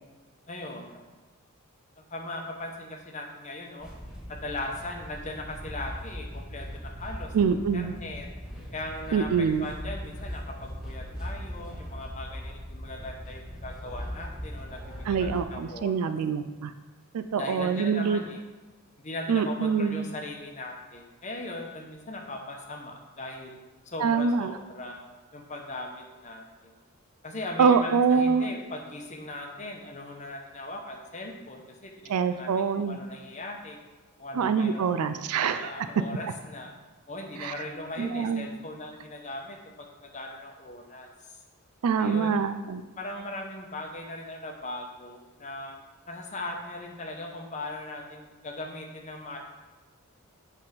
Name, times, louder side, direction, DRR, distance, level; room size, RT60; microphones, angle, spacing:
voice 1, 0.5-1.0 2.0-3.9 4.3-7.4 7.7-8.3 8.7-16.1 17.3-18.4 19.0-23.6 23.8-25.0 25.3-26.7 27.2-33.8 34.2-35.1 35.3-36.7 37.1-41.1 42.0-42.4 43.0-45.8 46.1-49.4, left 2 dB, 35° left, 2 dB, 0.9 m, -39 dB
sound 1, 3.8-15.4, equal, 5° right, 1.1 m, -39 dB
voice 2, 7.3-8.0 9.1-9.7 15.1-16.7 17.1-18.2 19.3-20.0 24.0-24.5 27.6-28.5 32.1-33.0 34.3-35.7 37.4-37.5 38.0-38.5 41.8-42.8, right 6 dB, 90° right, 10 dB, 0.4 m, -25 dB
8.1 x 3.5 x 5.1 m, 1.2 s
head